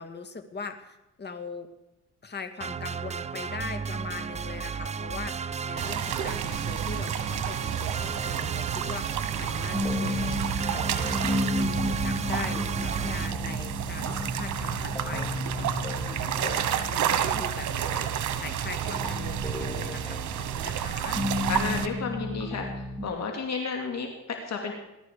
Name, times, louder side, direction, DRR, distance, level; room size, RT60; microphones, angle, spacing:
voice 1, 0.0-1.7 2.2-10.4 10.7-21.5, left 5 dB, 35° left, 7 dB, 2.0 m, -41 dB
sound 1, 2.6-13.3, right 6 dB, 25° right, 0.4 m, -33 dB
sound 2, 5.8-21.9, right 10 dB, 75° right, 1.4 m, -31 dB
sound 3, 9.7-23.1, left 1 dB, 10° left, 2.3 m, -33 dB
voice 2, 21.5-24.7, left 5 dB, 60° left, 2 dB, 2.5 m, -32 dB
19.5 x 12.0 x 5.0 m, 0.94 s
cardioid pair, 90°, 30 cm